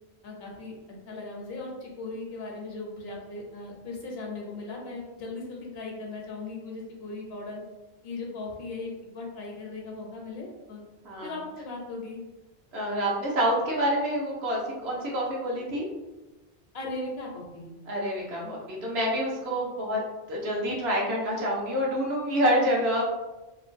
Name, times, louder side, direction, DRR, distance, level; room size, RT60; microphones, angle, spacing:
voice 1, 0.2-0.7 1.1-7.6 8.0-10.8 11.2-12.2 16.7-17.7 18.4-18.5, left 3 dB, 70° left, -1 dB, 0.9 m, -38 dB
voice 2, 12.7-15.9 17.9-20.0 20.3-23.0, equal, 70° right, -3 dB, 1.0 m, -27 dB
2.9 x 2.2 x 2.5 m, 1.1 s
omnidirectional pair, 1.1 m